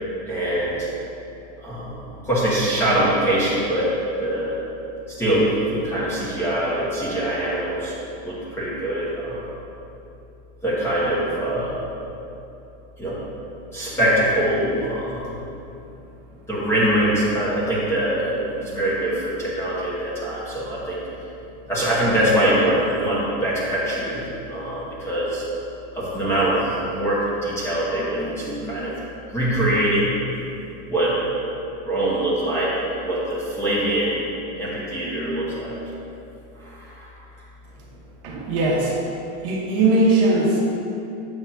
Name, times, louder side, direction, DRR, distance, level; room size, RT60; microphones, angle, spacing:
voice 1, 0.3-0.9 1.6-4.6 5.2-7.9 8.2-9.5 10.6-11.8 13.0-13.2 13.7-15.4 16.5-21.0 21.7-25.4 25.9-28.9 29.3-30.1 30.9-31.2 31.8-34.2 34.6-35.8 36.5-37.1, right 1 dB, 5° left, -9 dB, 1.2 m, -23 dB
voice 2, 38.2-39.0 39.4-40.6, right 2 dB, 45° right, -3 dB, 1.2 m, -19 dB
7.9 x 3.5 x 5.8 m, 2.8 s
supercardioid pair, 170°, 39 cm